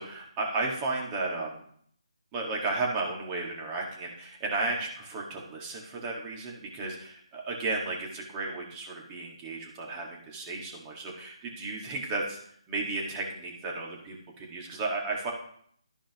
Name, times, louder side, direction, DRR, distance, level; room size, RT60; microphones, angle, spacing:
voice 1, 0.0-1.6 2.3-12.4 12.7-15.3, right 3 dB, 20° right, -2 dB, 1.9 m, -34 dB
13.0 x 5.0 x 3.0 m, 0.64 s
figure-of-eight pair, 155°, 3 cm